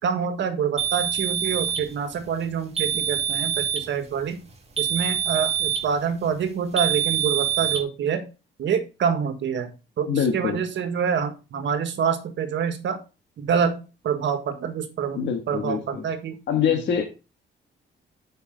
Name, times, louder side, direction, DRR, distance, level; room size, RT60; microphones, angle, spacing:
voice 1, 0.0-4.4 4.8-8.2 8.6-9.7 10.0-13.0 13.4-15.2 15.5-16.8, right 7 dB, 65° right, 9 dB, 1.6 m, -26 dB
sound 1, 0.8-1.9 2.8-3.9 4.8-5.9 6.8-7.8, right 10 dB, 30° right, 2.2 m, -25 dB
voice 2, 10.1-10.6 15.1-16.0 16.5-17.0, left 7 dB, 65° left, 1 dB, 1.7 m, -24 dB
7.2 x 5.5 x 5.1 m, 0.30 s
cardioid pair, 90°, 20 cm